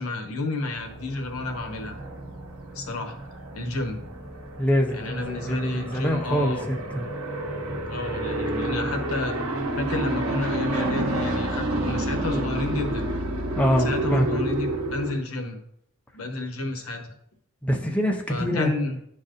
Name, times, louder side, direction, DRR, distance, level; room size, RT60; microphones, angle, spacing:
voice 1, 0.0-2.0 2.7-3.2 3.5-4.0 4.9-6.7 7.9-9.4 9.8-13.1 13.8-15.6 16.1-17.1 18.3-19.0, left 2 dB, 85° left, 5 dB, 1.0 m, -30 dB
sound 1, 0.8-15.1, right 1 dB, 85° right, 1.0 m, -30 dB
voice 2, 4.6-7.1 13.6-14.4 17.6-18.7, equal, 5° left, 1 dB, 0.5 m, -25 dB
10.5 x 4.0 x 2.5 m, 0.74 s
head